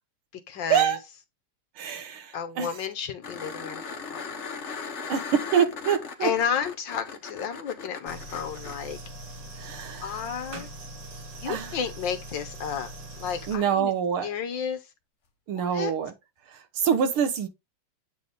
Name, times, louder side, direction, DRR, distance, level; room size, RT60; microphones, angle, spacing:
voice 1, 0.5-1.0 2.3-4.2 6.2-9.0 10.0-10.7 11.4-12.9 13.2-13.9 14.2-14.8 15.5-15.9, left 7 dB, 65° left, 1.4 m, -32 dB
voice 2, 1.8-2.7 5.1-6.3 9.6-10.2 11.5-11.8 13.5-14.3 15.5-16.1 16.8-17.5, right 8 dB, 75° right, 1.9 m, -25 dB
sound 1, 3.2-8.8 11.5-11.6, left 5 dB, 45° left, 1.0 m, -38 dB
sound 2, 8.1-13.6, right 1 dB, 55° right, 2.1 m, -41 dB
8.4 x 4.1 x 3.4 m
omnidirectional pair, 2.4 m